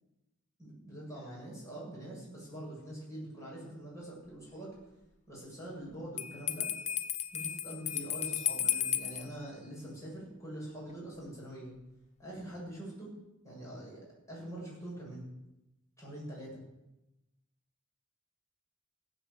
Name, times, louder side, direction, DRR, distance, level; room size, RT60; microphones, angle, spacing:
voice 1, 0.6-4.8 5.3-6.7 7.3-11.7 12.2-13.1 13.4-15.2 16.0-16.6, right 1 dB, 15° left, -5 dB, 7.9 m, -44 dB
Bell, 6.2-9.3, left 10 dB, 30° left, 0.8 m, -34 dB
17.5 x 8.3 x 8.3 m, 0.94 s
head